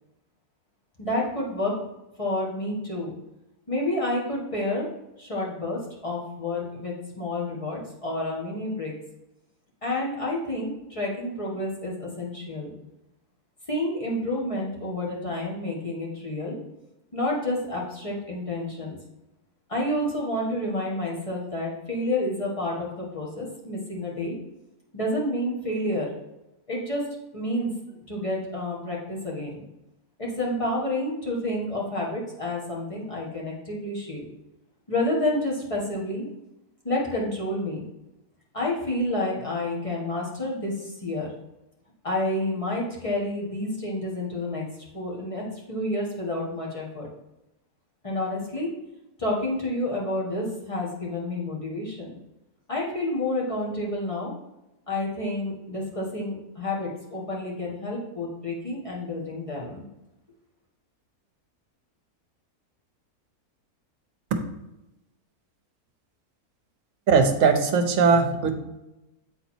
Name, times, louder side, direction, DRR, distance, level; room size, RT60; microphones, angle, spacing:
voice 1, 1.0-1.7 2.2-3.1 3.7-4.9 5.2-8.9 9.8-12.7 13.7-16.6 17.1-18.9 19.7-24.4 24.9-26.1 26.7-27.1 27.3-27.7 28.1-29.6 30.2-34.2 34.9-36.2 36.8-37.8 38.5-41.3 42.0-44.7 44.9-47.1 48.0-48.7 49.2-52.1 52.7-54.3 54.9-59.8, left 1 dB, 20° left, -4 dB, 1.7 m, -29 dB
voice 2, 67.1-68.5, right 5 dB, 60° right, 6 dB, 1.2 m, -19 dB
8.3 x 4.1 x 4.4 m, 0.95 s
omnidirectional pair, 1.6 m